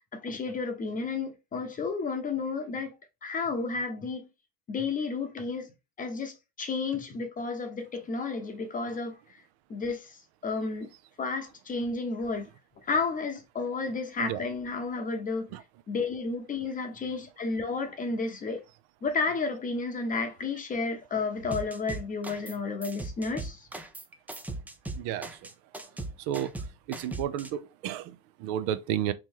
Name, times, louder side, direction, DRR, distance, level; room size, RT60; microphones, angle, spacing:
voice 1, 0.1-2.9 3.2-4.3 4.7-5.7 6.0-9.2 9.7-10.9 11.2-12.5 12.8-15.5 15.9-18.6 19.0-23.7, left 4 dB, 25° left, 0.7 m, -32 dB
sound 1, 21.5-22.6 22.8-27.5, right 2 dB, 5° right, 0.3 m, -38 dB
voice 2, 25.0-25.4 26.2-26.5 26.9-29.1, right 11 dB, 60° right, 0.5 m, -32 dB
3.1 x 3.0 x 3.5 m
supercardioid pair, 110°, 32 cm